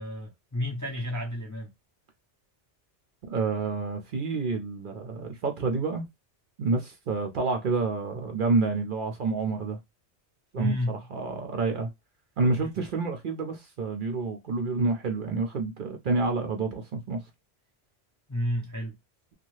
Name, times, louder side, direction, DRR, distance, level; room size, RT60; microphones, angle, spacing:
voice 1, 0.0-1.7 10.6-11.0 12.6-12.7 18.3-18.9, left 1 dB, 25° left, 0.4 m, -31 dB
voice 2, 3.2-6.0 6.6-9.8 10.5-11.9 12.4-17.2, right 3 dB, 55° right, 0.7 m, -28 dB
2.7 x 2.3 x 3.0 m
omnidirectional pair, 1.2 m